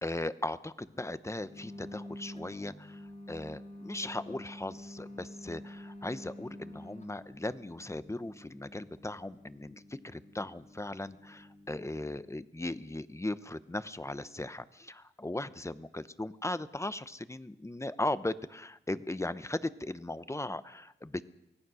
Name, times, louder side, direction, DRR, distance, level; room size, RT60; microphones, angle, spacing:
voice 1, 0.0-21.3, left 2 dB, 15° left, 14 dB, 0.9 m, -38 dB
sound 1, 1.4-12.2, left 1 dB, 35° left, 2.6 m, -49 dB
24.0 x 17.5 x 6.4 m, 0.89 s
wide cardioid pair, 90°, 20 cm